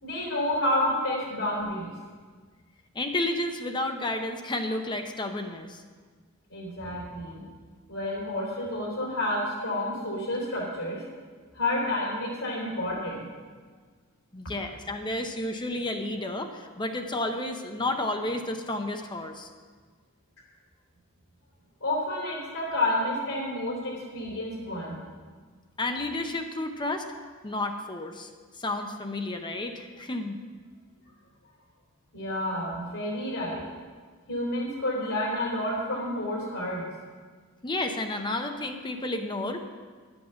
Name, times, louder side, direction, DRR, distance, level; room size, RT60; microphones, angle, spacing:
voice 1, 0.0-1.9 6.5-7.4 7.9-11.0 11.5-13.3 21.8-25.0 32.1-33.6 34.3-36.8, left 1 dB, 85° left, -5 dB, 3.7 m, -30 dB
voice 2, 2.9-5.8 14.3-19.5 25.8-27.0 27.4-28.3 28.6-30.4 37.6-39.6, left 2 dB, 20° left, 5 dB, 0.7 m, -31 dB
10.5 x 7.9 x 6.9 m, 1.5 s
head